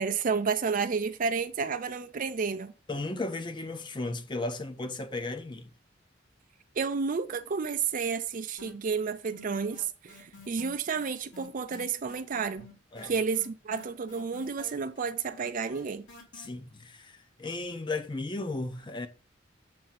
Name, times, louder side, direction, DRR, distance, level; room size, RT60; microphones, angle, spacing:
voice 1, 0.0-2.7 6.8-12.6 13.0-16.1, right 5 dB, 45° right, 0.5 m, -31 dB
voice 2, 2.9-5.7 12.9-13.1 16.3-19.1, left 2 dB, 25° left, 0.7 m, -35 dB
sound 1, 8.6-9.1 9.3-16.5, left 3 dB, 65° left, 2.5 m, -50 dB
7.6 x 2.8 x 5.8 m
head